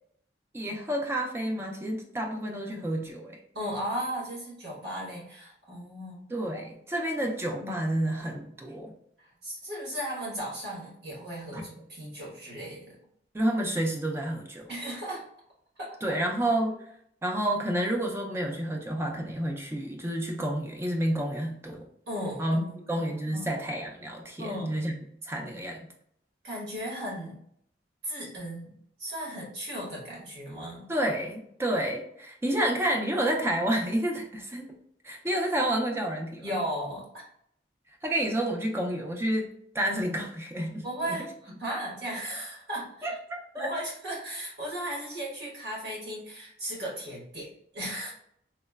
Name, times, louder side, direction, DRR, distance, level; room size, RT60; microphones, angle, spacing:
voice 1, 0.5-3.4 6.3-8.9 11.5-11.6 13.3-14.7 16.0-16.8 17.2-21.8 22.4-22.6 22.9-25.0 25.2-25.9 30.9-34.7 35.0-36.5 38.0-39.5 39.7-40.9 43.0-43.7, right 1 dB, 15° right, 1 dB, 0.3 m, -29 dB
voice 2, 3.5-6.2 7.6-7.7 9.2-13.0 14.7-15.2 15.8-16.2 22.1-23.5 24.4-24.8 26.4-27.4 28.0-28.7 29.0-30.9 36.4-37.1 40.8-43.1 43.5-48.1, equal, 65° right, -4 dB, 1.2 m, -36 dB
3.0 x 2.0 x 2.2 m, 0.69 s
head